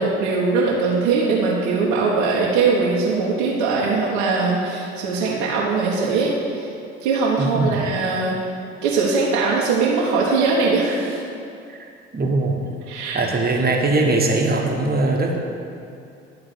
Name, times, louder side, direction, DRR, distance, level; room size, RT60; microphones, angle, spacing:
voice 1, 0.0-6.7 7.0-8.4 8.8-11.2 12.9-13.2, right 4 dB, 75° right, -6 dB, 1.2 m, -21 dB
voice 2, 7.4-7.8 11.8-12.5 13.1-15.4, right 2 dB, 30° right, 1 dB, 1.4 m, -21 dB
11.5 x 3.9 x 6.9 m, 2.5 s
hypercardioid pair, 55°, 33 cm